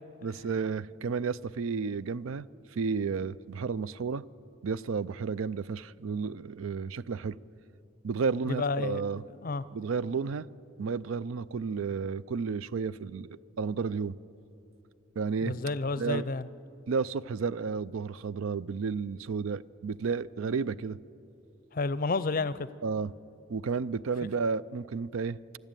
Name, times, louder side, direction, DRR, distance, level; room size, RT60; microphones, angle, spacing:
voice 1, 0.2-2.5 2.7-4.2 4.6-7.4 8.0-9.2 9.7-10.5 10.8-14.2 15.2-15.6 16.0-16.3 16.9-21.0 22.8-23.1 23.5-25.4, right 5 dB, 80° right, 18 dB, 0.4 m, -32 dB
voice 2, 8.5-9.0 9.4-9.6 15.4-16.5 21.7-22.7, left 3 dB, 45° left, 16 dB, 0.5 m, -30 dB
26.0 x 12.0 x 9.0 m, 2.7 s
head